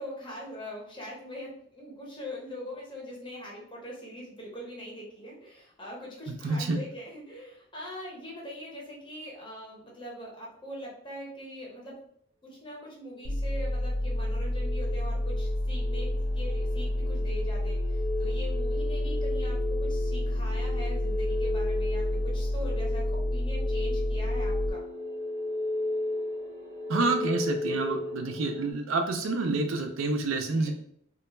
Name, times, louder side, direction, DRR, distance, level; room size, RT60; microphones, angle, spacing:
voice 1, 0.0-12.0 12.4-24.8 30.5-30.7, equal, 25° left, -4 dB, 0.7 m, -42 dB
voice 2, 6.4-6.8 26.9-30.7, right 3 dB, 75° right, 5 dB, 0.4 m, -28 dB
sound 1, 13.2-24.7, left 1 dB, 85° left, 0.4 m, -29 dB
sound 2, 13.6-28.7, left 2 dB, 20° right, 0.8 m, -35 dB
2.2 x 2.1 x 3.0 m, 0.68 s
head